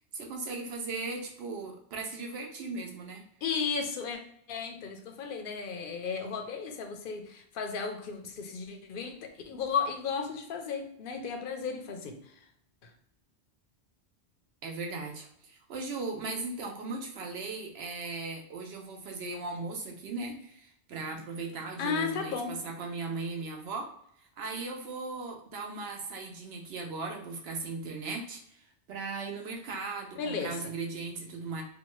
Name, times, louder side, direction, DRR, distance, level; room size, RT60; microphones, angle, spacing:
voice 1, 0.1-3.2 14.6-23.9 24.4-28.6 28.9-31.6, right 3 dB, 70° right, 2 dB, 0.9 m, -38 dB
voice 2, 3.4-4.2 4.5-12.4 12.8-12.9 21.8-22.5 30.1-30.7, left 5 dB, 60° left, 4 dB, 0.6 m, -34 dB
2.8 x 2.2 x 3.0 m, 0.70 s
omnidirectional pair, 1.1 m